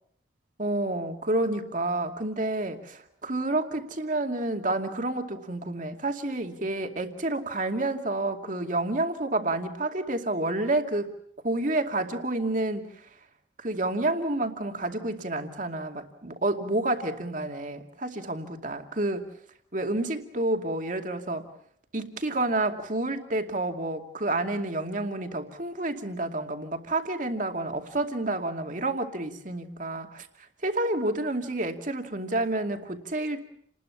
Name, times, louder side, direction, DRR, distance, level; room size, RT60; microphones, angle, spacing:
voice 1, 0.6-11.1 11.4-12.8 13.6-19.3 19.7-21.4 21.9-30.3 30.6-33.4, right 2 dB, 45° right, 5 dB, 2.5 m, -29 dB
29.5 x 20.5 x 7.3 m, 0.66 s
head